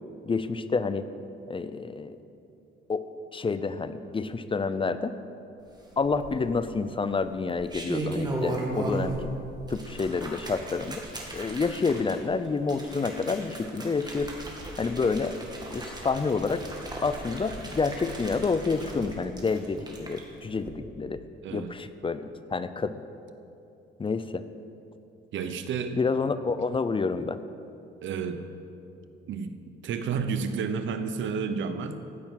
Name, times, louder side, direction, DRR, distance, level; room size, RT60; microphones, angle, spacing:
voice 1, 0.2-1.1 1.5-2.2 2.9-3.0 3.3-5.1 6.0-9.1 9.7-11.0 11.3-14.3 14.8-15.3 15.7-16.6 17.0-21.2 21.5-22.9 24.0-24.4 25.9-27.4, left 4 dB, 25° left, 12 dB, 0.6 m, -28 dB
sound 1, 6.0-6.6 7.4-9.3 9.6-20.2 20.6-20.7, right 1 dB, 20° right, 2.5 m, -36 dB
voice 2, 21.4-21.7 25.3-26.0 28.0-28.4 29.3-32.0, right 6 dB, 75° right, 9 dB, 0.9 m, -31 dB
14.5 x 6.1 x 8.9 m, 2.7 s
cardioid pair, 90°, 20 cm